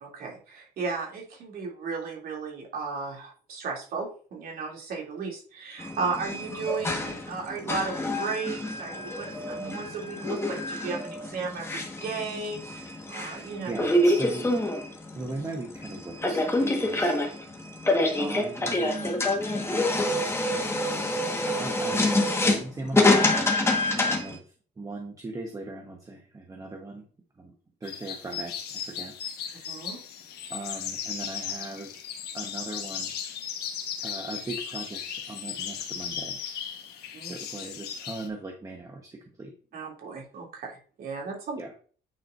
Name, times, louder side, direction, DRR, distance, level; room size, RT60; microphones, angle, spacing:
voice 1, 0.0-13.7 23.6-23.8 29.7-30.0 37.1-37.3 39.7-41.6, right 4 dB, 60° right, -1 dB, 2.8 m, -35 dB
sound 1, 5.8-24.4, left 1 dB, 15° left, 1.5 m, -27 dB
voice 2, 13.6-14.5 15.1-17.2 18.2-19.5 20.9-23.3 23.5-27.1 27.3-27.5 27.8-30.0 30.5-32.1 32.3-33.1 34.0-36.4 37.3-39.5 41.5-41.7, right 2 dB, 20° right, 3 dB, 1.1 m, -39 dB
sound 2, 27.8-38.3, left 8 dB, 75° left, 1.3 m, -36 dB
9.0 x 4.8 x 2.6 m, 0.42 s
cardioid pair, 110°, 17 cm